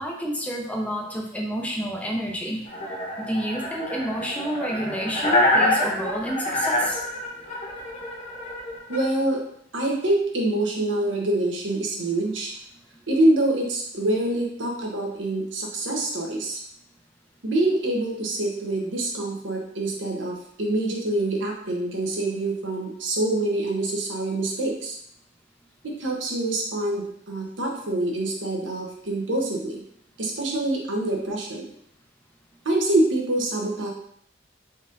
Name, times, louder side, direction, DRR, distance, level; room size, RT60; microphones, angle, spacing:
voice 1, 0.0-2.7 3.2-7.0, equal, 5° left, -1 dB, 0.6 m, -29 dB
sound 1, 2.7-9.0, left 1 dB, 40° left, 1.0 m, -26 dB
voice 2, 8.9-9.4 9.7-12.5 13.1-16.6 17.4-25.0 25.8-29.8 30.2-31.7 32.6-33.9, right 1 dB, 75° right, -1 dB, 0.9 m, -25 dB
4.0 x 3.8 x 2.5 m, 0.66 s
head